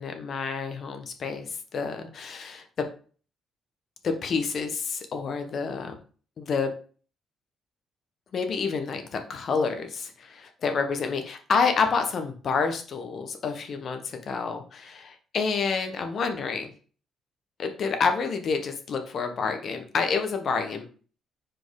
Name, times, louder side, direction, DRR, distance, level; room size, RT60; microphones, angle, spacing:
voice 1, 0.0-2.9 4.0-6.0 6.4-6.7 8.3-16.7 17.6-20.9, left 5 dB, 55° left, 6 dB, 1.2 m, -28 dB
4.8 x 4.2 x 4.9 m, 0.40 s
cardioid pair, 90°, 0 cm